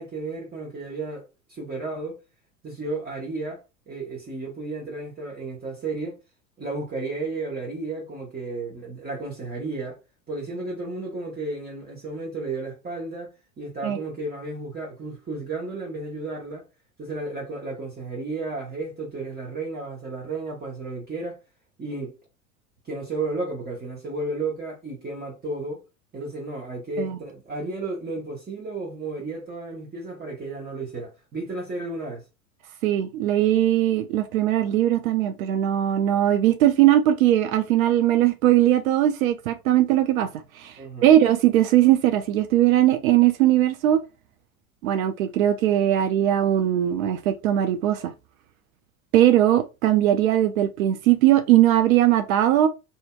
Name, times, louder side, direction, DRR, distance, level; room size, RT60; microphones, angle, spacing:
voice 1, 0.0-2.2 2.6-6.2 6.6-10.0 10.3-16.6 17.0-21.4 21.8-22.2 22.8-25.8 26.1-32.2 40.8-41.2, right 3 dB, 20° right, 1.1 m, -33 dB
voice 2, 32.8-40.3 40.5-44.0 44.8-48.1 49.1-52.7, right 12 dB, 75° right, 0.5 m, -20 dB
2.8 x 2.6 x 2.2 m
hypercardioid pair, 90°, 43 cm